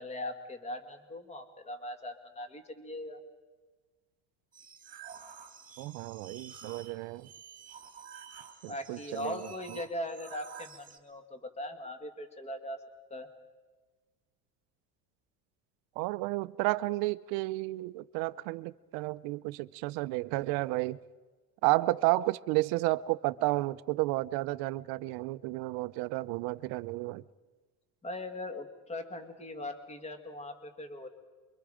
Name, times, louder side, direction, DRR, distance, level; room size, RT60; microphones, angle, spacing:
voice 1, 0.0-3.2 8.7-12.8 13.1-13.3 28.0-31.1, left 1 dB, 15° left, 2.0 m, -40 dB
sound 1, 4.5-11.0, right 7 dB, 20° right, 2.0 m, -50 dB
voice 2, 5.8-7.3 8.6-9.8 16.0-21.0 21.6-27.2, right 20 dB, 65° right, 0.7 m, -32 dB
28.5 x 23.5 x 5.1 m
cardioid pair, 150°, 39 cm